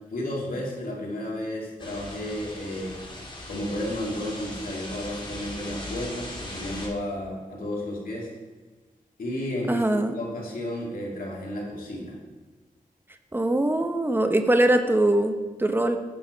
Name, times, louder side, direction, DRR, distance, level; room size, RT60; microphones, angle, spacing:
voice 1, 0.1-3.0 3.5-8.3 9.2-12.2, left 1 dB, 80° left, -3 dB, 2.4 m, -32 dB
sound 1, 1.8-6.9, left 1 dB, 35° left, 2.4 m, -39 dB
voice 2, 9.7-10.1 13.3-16.0, right 1 dB, 15° right, 7 dB, 0.8 m, -22 dB
9.4 x 6.3 x 4.7 m, 1.3 s
cardioid pair, 60°, 15 cm